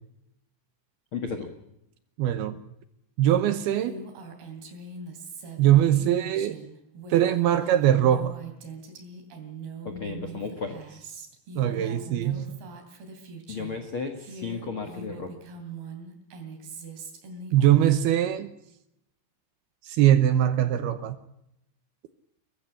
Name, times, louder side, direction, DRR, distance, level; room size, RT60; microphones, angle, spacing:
voice 1, 1.1-1.5 9.8-11.1 13.5-15.3, left 4 dB, 70° left, 1.2 m, -34 dB
voice 2, 2.2-2.6 3.2-4.0 5.6-6.6 7.1-8.3 11.6-12.6 17.5-18.5 19.8-21.2, right 11 dB, 75° right, 2.6 m, -22 dB
Female speech woman speaking, 3.7-13.8 14.2-18.1, right 3 dB, 60° right, 4.7 m, -42 dB
23.0 x 13.5 x 9.8 m
omnidirectional pair, 5.3 m